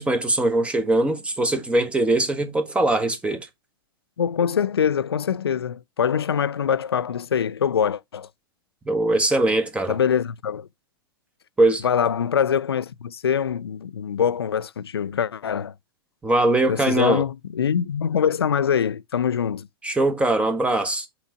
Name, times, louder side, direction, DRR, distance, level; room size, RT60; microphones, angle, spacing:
voice 1, 0.0-3.5 8.9-10.0 11.6-11.8 16.2-17.2 19.8-21.1, right 2 dB, 10° right, 1.1 m, -21 dB
voice 2, 4.2-8.3 9.9-10.7 11.8-15.7 16.7-19.7, left 8 dB, 85° left, 0.4 m, -24 dB
5.9 x 4.0 x 4.8 m
hypercardioid pair, 105°, 13 cm